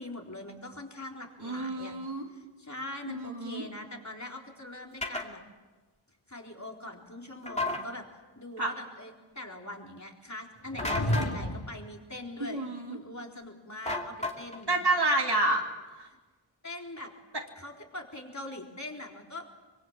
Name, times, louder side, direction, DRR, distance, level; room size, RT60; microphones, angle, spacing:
voice 1, 0.0-2.0 2.3-5.4 6.3-8.0 8.4-12.6 12.9-14.8 16.1-16.2 16.6-17.1 17.6-19.4, left 1 dB, 40° left, 1 dB, 4.1 m, -42 dB
voice 2, 1.4-2.3 3.1-3.6 8.6-8.7 12.4-13.0 14.7-15.6 15.9-16.1, right 2 dB, 60° right, 0 dB, 2.9 m, -29 dB
sound 1, 5.0-5.3 7.5-7.8 10.8-11.3 13.9-14.6, left 2 dB, 15° left, 2.6 m, -32 dB
sound 2, 10.6-11.8, left 1 dB, 55° left, 2.4 m, -31 dB
25.5 x 23.5 x 7.4 m, 1.3 s
wide cardioid pair, 40°, 45 cm